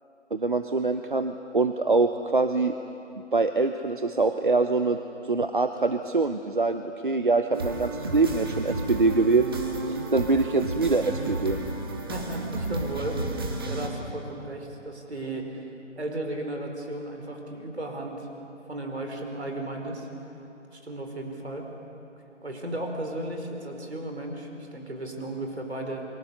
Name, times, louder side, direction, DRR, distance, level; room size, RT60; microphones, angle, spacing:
voice 1, 0.3-2.7 3.3-5.0 5.3-9.5 9.9-11.6, right 3 dB, 45° right, 8 dB, 0.9 m, -24 dB
sound 1, 7.5-13.9, right 2 dB, 20° right, 1.5 m, -32 dB
voice 2, 12.1-13.2 13.6-15.5 15.9-18.3 18.7-20.1 20.7-21.7 22.4-26.0, right 1 dB, 60° right, 3 dB, 4.9 m, -35 dB
29.5 x 23.5 x 6.9 m, 2.8 s
figure-of-eight pair, 155°, 36 cm